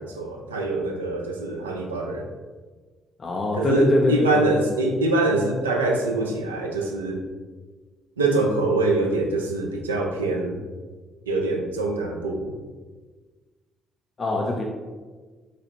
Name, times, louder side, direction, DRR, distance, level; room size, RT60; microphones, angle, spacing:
voice 1, 0.0-2.2 3.6-7.2 8.2-10.6 11.3-12.5, right 2 dB, 90° right, 1 dB, 0.4 m, -24 dB
voice 2, 3.2-4.6 14.2-14.6, left 2 dB, 40° left, 1 dB, 0.4 m, -23 dB
3.9 x 2.4 x 3.1 m, 1.4 s
hypercardioid pair, 45°, 0 cm